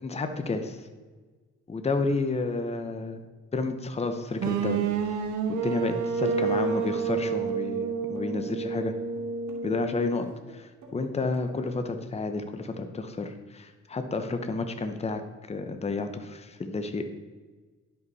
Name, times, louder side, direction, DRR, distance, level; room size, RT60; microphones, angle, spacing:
voice 1, 0.0-0.8 1.7-3.2 3.5-5.2 5.5-8.9 9.6-10.3 10.5-15.2 15.5-17.0, left 3 dB, 20° left, 7 dB, 0.8 m, -31 dB
sound 1, 4.4-10.3, right 6 dB, 85° right, 1.0 m, -29 dB
sound 2, 6.8-12.0, right 2 dB, 70° right, 2.4 m, -50 dB
11.5 x 5.4 x 4.1 m, 1.4 s
cardioid pair, 90°, 29 cm